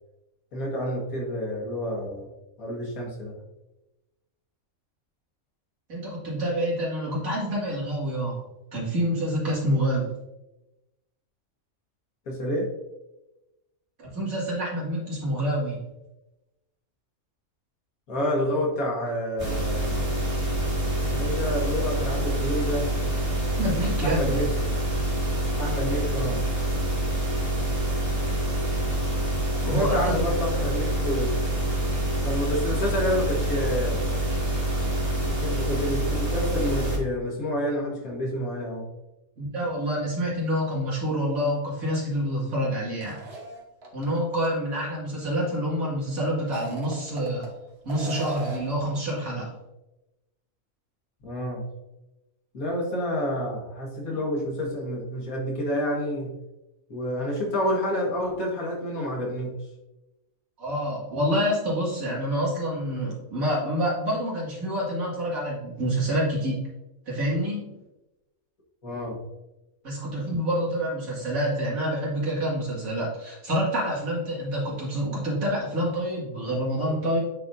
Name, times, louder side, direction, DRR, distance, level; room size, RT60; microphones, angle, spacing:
voice 1, 0.5-2.3 2.6-3.4 12.3-12.7 18.1-20.2 21.1-22.9 24.0-24.5 25.6-26.5 29.7-31.4 32.2-34.0 35.3-38.9 51.2-51.6 52.5-56.3 56.9-59.5 68.8-69.2, left 1 dB, 80° left, -2 dB, 2.0 m, -29 dB
voice 2, 5.9-8.4 8.7-10.1 14.0-15.8 23.6-24.3 29.6-30.1 34.3-34.4 39.4-43.2 43.9-47.5 47.8-49.5 54.1-54.2 60.6-66.6 67.1-67.8 69.8-77.2, equal, 75° right, -5 dB, 2.6 m, -27 dB
sound 1, 19.4-37.0, right 1 dB, 25° right, 1.7 m, -26 dB
sound 2, 43.0-44.1 44.4-44.5 46.4-47.5 47.9-48.8, right 2 dB, 50° right, 1.3 m, -37 dB
9.3 x 4.0 x 2.6 m, 0.99 s
omnidirectional pair, 1.5 m